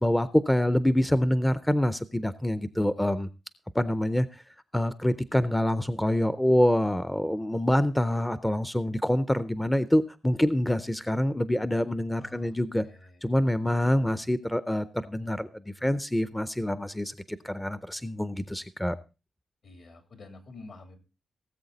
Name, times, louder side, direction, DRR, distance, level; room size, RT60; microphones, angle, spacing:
voice 1, 0.0-3.3 3.7-4.3 4.7-12.9 13.2-19.0, left 1 dB, 5° left, 14 dB, 0.5 m, -26 dB
voice 2, 12.2-13.2 13.7-14.1 19.6-21.0, left 3 dB, 65° left, 6 dB, 3.1 m, -49 dB
18.0 x 7.8 x 4.0 m, 0.31 s
wide cardioid pair, 110°, 0 cm